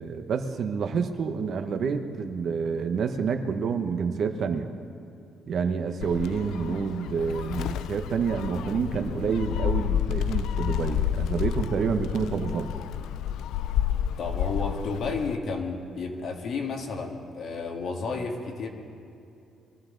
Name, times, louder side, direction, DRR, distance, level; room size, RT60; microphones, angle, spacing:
voice 1, 0.0-4.7 5.5-12.7, right 6 dB, 55° right, 7 dB, 1.0 m, -28 dB
Gull seagull, 6.0-15.4, left 10 dB, 85° left, 0.4 m, -30 dB
voice 2, 14.2-18.7, left 4 dB, 60° left, 2 dB, 1.8 m, -32 dB
23.0 x 13.5 x 3.9 m, 2.6 s
cardioid pair, 130°, 0 cm